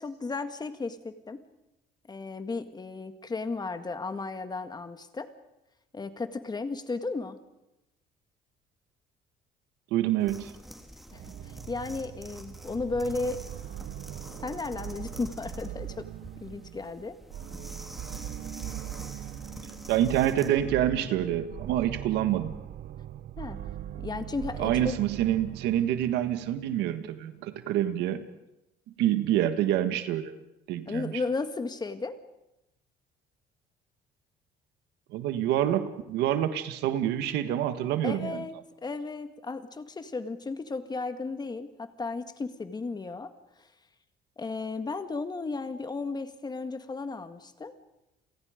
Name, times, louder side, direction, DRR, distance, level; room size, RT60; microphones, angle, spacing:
voice 1, 0.0-1.4 2.1-5.3 5.9-7.4 11.1-13.4 14.4-16.1 16.4-17.2 23.4-23.6 24.0-24.9 30.9-32.2 38.0-38.6 38.8-43.3 44.4-47.7, left 3 dB, 25° left, 9 dB, 1.8 m, -34 dB
voice 2, 9.9-10.5 19.9-22.5 24.6-28.3 29.0-30.4 30.7-31.1 35.1-38.4, right 11 dB, 90° right, 10 dB, 1.6 m, -27 dB
sound 1, 10.2-20.6, equal, ahead, 3.1 m, -47 dB
sound 2, 11.1-26.8, right 12 dB, 60° right, 0.9 m, -40 dB
30.0 x 23.0 x 5.1 m, 0.92 s
cardioid pair, 110°, 17 cm